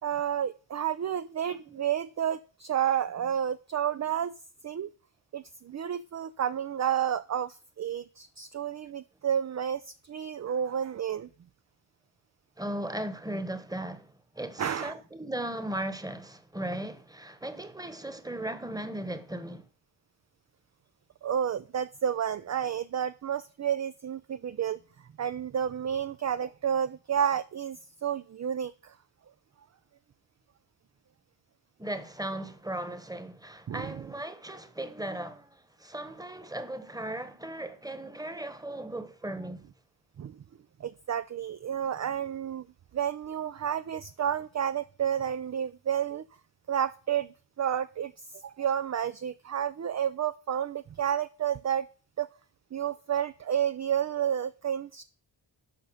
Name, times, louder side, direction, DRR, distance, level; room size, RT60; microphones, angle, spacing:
voice 1, 0.0-4.3 4.6-4.9 5.3-11.3 14.6-14.9 21.2-24.8 25.2-29.0 33.7-34.1 40.2-40.4 40.8-42.7 42.9-46.3 46.7-51.9 52.2-52.3 52.7-55.0, right 9 dB, 35° right, 0.4 m, -31 dB
voice 2, 12.6-14.1 14.3-19.7 31.8-39.6, right 1 dB, 10° right, 1.3 m, -37 dB
12.5 x 5.4 x 6.3 m
wide cardioid pair, 85°, 48 cm